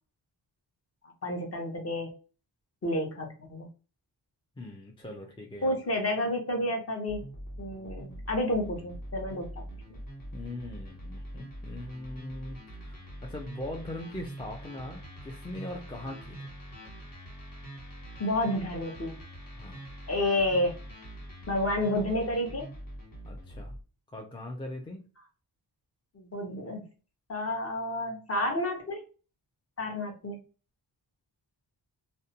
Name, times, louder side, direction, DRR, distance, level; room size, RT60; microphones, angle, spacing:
voice 1, 1.0-2.1 2.8-3.7 5.6-7.2 7.6-9.5 9.9-10.0 18.2-19.2 20.1-20.7 21.5-22.7 26.1-26.8 27.3-29.0 29.8-30.4, left 1 dB, 35° left, 2 dB, 0.9 m, -30 dB
voice 2, 4.6-5.8 10.3-13.0 13.2-16.4 19.6-19.8 23.2-23.7 24.1-25.1, left 1 dB, 10° left, 1 dB, 0.4 m, -41 dB
sound 1, 7.1-23.8, right 1 dB, 50° left, 1.3 m, -44 dB
2.6 x 2.1 x 2.7 m, 0.35 s
cardioid pair, 85°, 43 cm